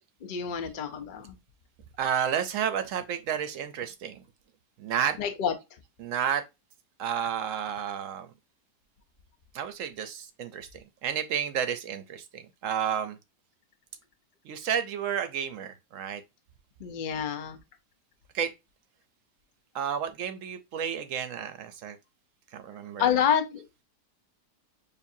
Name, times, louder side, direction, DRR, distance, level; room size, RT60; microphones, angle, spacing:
voice 1, 0.2-1.4 5.2-5.5 16.8-17.6 23.0-23.8, left 8 dB, 85° left, 0.4 m, -28 dB
voice 2, 2.0-4.2 4.8-5.2 6.0-6.4 7.0-8.3 9.5-10.7 11.0-13.2 14.4-16.2 18.3-18.5 19.7-22.0 22.5-23.2, right 8 dB, 65° right, 0.8 m, -31 dB
6.8 x 2.5 x 2.6 m
omnidirectional pair, 1.8 m